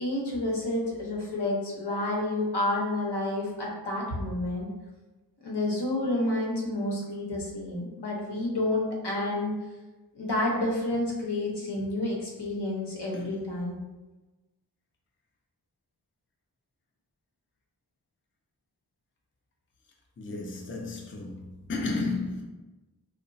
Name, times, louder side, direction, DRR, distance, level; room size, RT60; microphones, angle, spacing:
voice 1, 0.0-4.7 5.4-9.5 10.1-13.8, left 1 dB, 80° left, 0.8 m, -29 dB
voice 2, 20.2-22.4, left 3 dB, 30° left, 0.4 m, -33 dB
2.9 x 2.0 x 2.5 m
wide cardioid pair, 45°, 40 cm